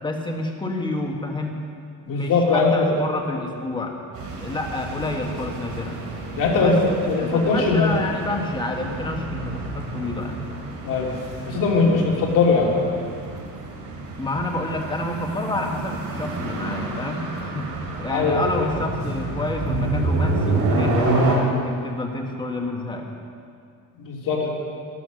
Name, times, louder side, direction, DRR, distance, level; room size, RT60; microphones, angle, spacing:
voice 1, 0.0-1.6 2.1-3.9 4.4-5.9 6.6-10.4 14.2-23.1, left 2 dB, 15° left, 2 dB, 1.3 m, -29 dB
voice 2, 2.1-2.9 6.4-6.8 7.1-7.9 10.8-11.1 11.5-12.7 18.1-18.7 24.0-24.5, left 4 dB, 65° left, -2 dB, 2.9 m, -20 dB
sound 1, 4.1-21.3, right 2 dB, 65° right, 3.6 m, -29 dB
13.0 x 12.0 x 6.4 m, 2.3 s
cardioid pair, 175°, 34 cm